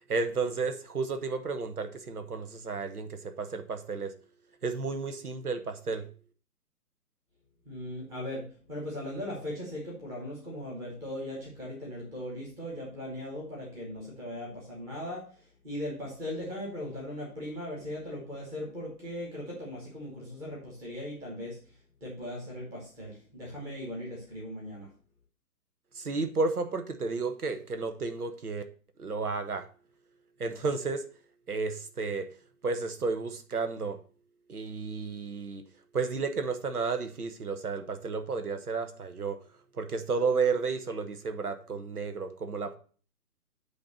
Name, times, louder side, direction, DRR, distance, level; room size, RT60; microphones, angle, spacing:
voice 1, 0.1-4.1 4.6-6.1 25.9-28.6 29.0-29.7 30.4-31.0 31.5-32.3 32.6-34.0 34.5-35.6 35.9-39.4 39.8-42.7, right 4 dB, 70° right, 8 dB, 1.1 m, -32 dB
voice 2, 7.6-21.6 22.0-24.9, left 1 dB, 5° right, -4 dB, 1.1 m, -39 dB
8.4 x 3.0 x 6.2 m, 0.42 s
figure-of-eight pair, 135°, 47 cm